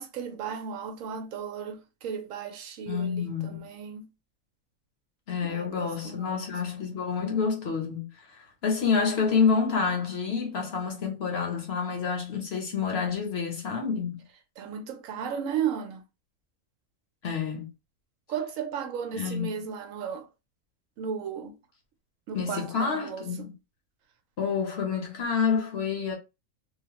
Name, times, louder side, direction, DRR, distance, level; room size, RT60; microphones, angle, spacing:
voice 1, 0.0-4.1 5.4-6.4 14.6-16.0 18.3-20.3 21.0-21.6 22.3-23.5, right 7 dB, 75° right, 0.9 m, -35 dB
voice 2, 2.9-3.6 5.3-14.2 17.2-17.7 19.1-19.5 22.3-23.5 24.4-26.2, left 5 dB, 55° left, 0.9 m, -28 dB
2.9 x 2.1 x 2.9 m
omnidirectional pair, 1.4 m